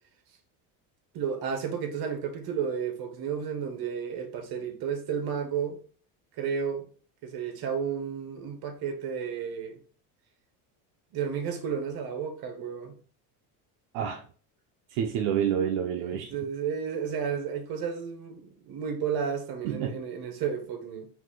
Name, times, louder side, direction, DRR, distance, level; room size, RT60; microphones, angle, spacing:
voice 1, 1.1-5.8 6.4-6.8 7.2-9.8 11.1-13.0 16.0-21.1, right 7 dB, 55° right, 1.3 m, -32 dB
voice 2, 14.9-16.3 19.6-20.0, right 8 dB, 80° right, 0.7 m, -28 dB
4.7 x 2.8 x 3.8 m
supercardioid pair, 110°, 43 cm